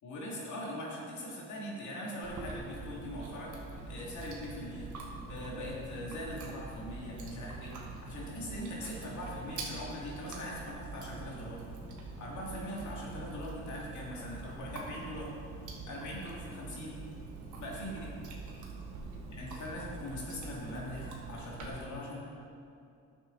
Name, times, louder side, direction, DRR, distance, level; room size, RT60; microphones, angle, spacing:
voice 1, 0.0-3.5 3.9-4.9 5.3-11.6 12.2-15.3 15.8-17.0 17.6-18.1 19.3-22.2, left 1 dB, 70° left, -3 dB, 2.3 m, -41 dB
Chewing mastication, 2.2-21.7, right 3 dB, 75° right, 1.4 m, -44 dB
10.5 x 7.2 x 3.9 m, 2.6 s
cardioid pair, 90°, 30 cm